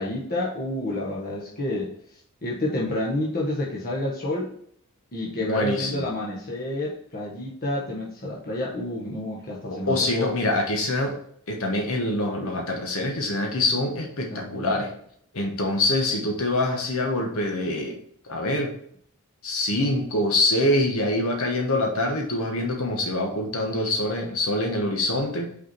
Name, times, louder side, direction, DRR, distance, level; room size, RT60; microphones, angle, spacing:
voice 1, 0.0-1.9 2.4-4.5 5.1-10.3 14.3-14.7, left 1 dB, 45° left, -3 dB, 1.2 m, -29 dB
voice 2, 5.4-6.1 9.7-11.2 11.5-14.9 15.3-17.9 18.2-18.7 19.4-25.5, left 1 dB, 70° left, 2 dB, 1.1 m, -25 dB
5.8 x 4.3 x 4.6 m, 0.66 s
head